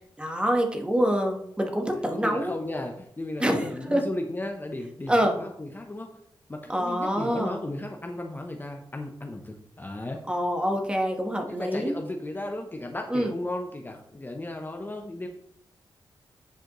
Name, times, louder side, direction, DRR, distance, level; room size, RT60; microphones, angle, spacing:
voice 1, 0.2-2.5 3.4-4.0 5.1-5.3 6.7-7.6 10.3-12.0 13.1-13.3, equal, 10° right, 2 dB, 1.2 m, -26 dB
voice 2, 1.9-6.2 6.5-10.2 11.5-15.3, left 1 dB, 20° left, 3 dB, 0.7 m, -35 dB
9.1 x 4.9 x 3.0 m, 0.73 s
cardioid pair, 80°, 9 cm